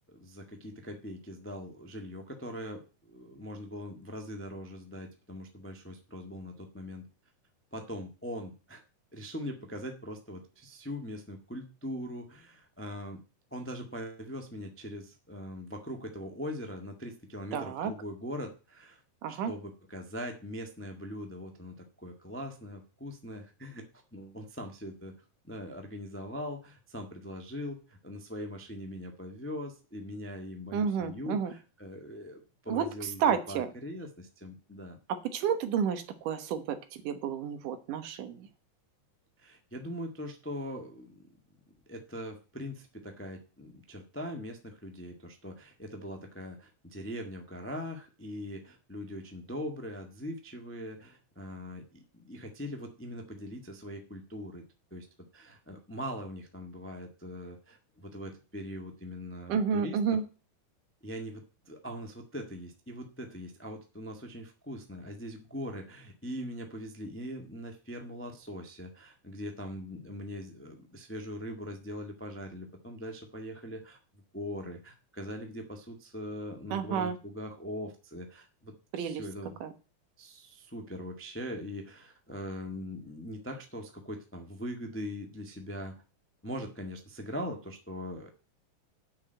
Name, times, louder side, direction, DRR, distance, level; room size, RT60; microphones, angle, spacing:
voice 1, 0.1-7.1 7.7-8.8 9.1-13.2 13.5-19.0 19.3-23.9 24.1-25.1 25.4-35.0 39.4-41.3 41.9-54.6 54.9-55.1 55.3-60.2 61.0-79.6 80.2-85.9 86.4-88.3, equal, 20° left, 3 dB, 0.3 m, -41 dB
voice 2, 17.5-17.9 19.2-19.5 30.7-31.5 32.7-32.9 33.2-33.7 35.3-36.8 37.0-38.5 59.5-60.2 76.7-77.2 78.9-79.2 79.6-79.7, right 7 dB, 85° right, 8 dB, 2.8 m, -30 dB
8.5 x 6.2 x 8.0 m, 0.33 s
omnidirectional pair, 3.6 m